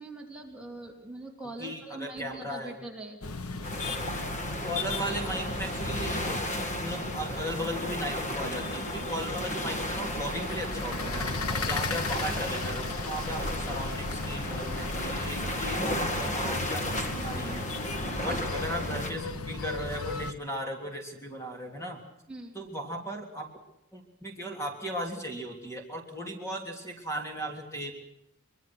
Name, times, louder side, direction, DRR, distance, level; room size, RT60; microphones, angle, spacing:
voice 1, 0.0-3.3 18.3-18.7 22.3-22.6, right 2 dB, 5° right, -2 dB, 3.3 m, -43 dB
voice 2, 1.6-2.7 4.6-6.5 6.8-11.4 11.6-17.8 18.2-22.0 22.5-23.5 23.9-27.9, equal, 15° left, 2 dB, 3.3 m, -36 dB
sound 1, 3.2-20.3, left 3 dB, 85° left, 1.3 m, -36 dB
sound 2, 3.6-19.1, equal, 35° left, 2.2 m, -34 dB
25.0 x 23.0 x 6.2 m, 0.84 s
head